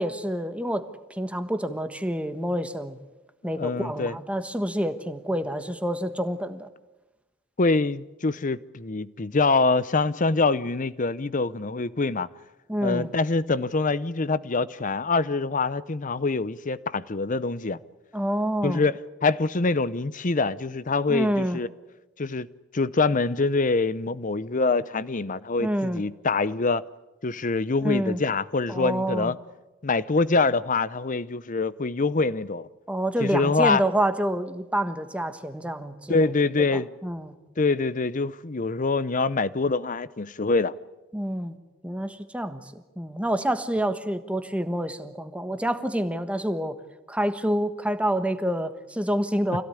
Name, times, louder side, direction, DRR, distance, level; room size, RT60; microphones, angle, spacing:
voice 1, 0.0-3.0 3.4-6.7 12.7-13.1 18.1-18.8 21.1-21.6 25.6-26.0 27.8-28.2 28.7-29.3 32.9-36.3 36.7-37.3 41.1-41.6 41.8-42.6 43.0-46.8 47.1-49.6, equal, 5° right, 1.4 m, -27 dB
voice 2, 3.4-4.2 7.6-12.3 12.8-17.8 18.6-21.7 22.2-22.5 22.7-26.8 27.2-29.3 29.8-32.7 33.2-33.8 36.1-36.9 37.6-40.7, left 3 dB, 40° left, 0.7 m, -25 dB
26.0 x 16.5 x 9.9 m
head